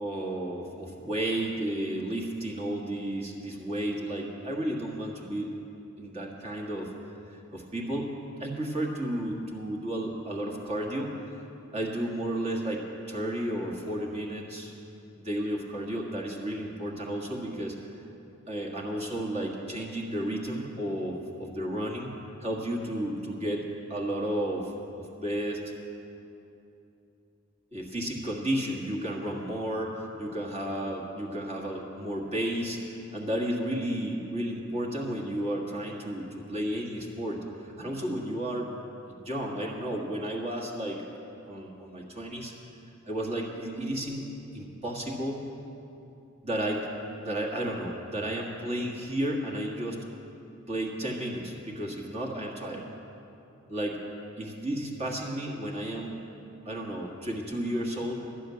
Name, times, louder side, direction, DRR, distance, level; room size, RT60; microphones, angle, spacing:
voice 1, 0.0-5.5 6.0-6.9 7.2-8.1 8.4-11.1 11.7-14.7 15.2-17.7 18.5-22.1 22.4-24.7 25.0-25.7 27.7-38.7 39.1-41.0 41.5-42.5 43.1-44.2 44.5-45.4 46.4-46.9 47.2-50.0 50.7-52.9 53.7-54.0 54.4-56.2 56.6-58.3, right 1 dB, 30° right, -1 dB, 1.6 m, -32 dB
12.0 x 7.1 x 9.4 m, 2.8 s
head